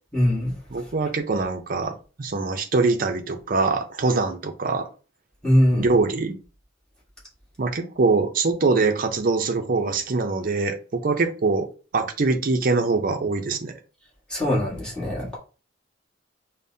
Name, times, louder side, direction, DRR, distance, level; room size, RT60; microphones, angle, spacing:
voice 1, 0.1-0.5 5.4-5.9 14.3-15.4, equal, 5° left, 1.5 m, -21 dB
voice 2, 0.7-4.9 5.8-6.4 7.6-11.7 11.9-13.7, right 3 dB, 45° right, 0.5 m, -23 dB
5.1 x 2.1 x 2.7 m
head